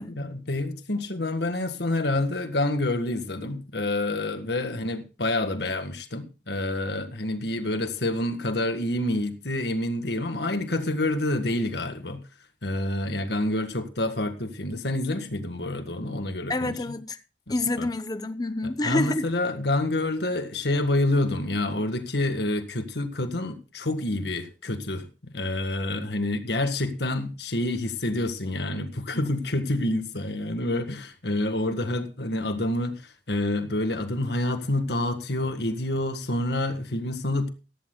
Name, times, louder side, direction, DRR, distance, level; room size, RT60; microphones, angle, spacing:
voice 1, 0.1-12.2 12.6-16.7 17.8-17.9 18.6-37.5, left 1 dB, 65° left, 1.7 m, -28 dB
voice 2, 16.5-17.2 17.5-19.3, left 2 dB, 20° left, 0.8 m, -28 dB
15.5 x 14.5 x 2.3 m
head